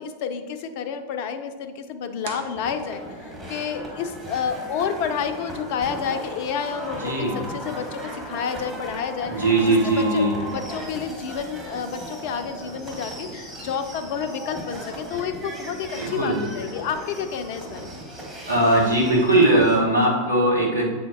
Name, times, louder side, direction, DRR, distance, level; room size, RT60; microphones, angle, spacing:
voice 1, 0.0-17.9, left 7 dB, 45° left, 8 dB, 0.5 m, -30 dB
sound 1, 2.2-3.4, right 6 dB, 55° right, 0.5 m, -41 dB
sound 2, 2.5-19.8, right 1 dB, 10° right, 1.4 m, -37 dB
voice 2, 7.0-7.4 9.3-10.3 15.9-16.4 18.5-20.9, right 1 dB, 75° right, -2 dB, 1.4 m, -19 dB
7.9 x 4.2 x 2.9 m, 1.4 s
figure-of-eight pair, 90°, 0 cm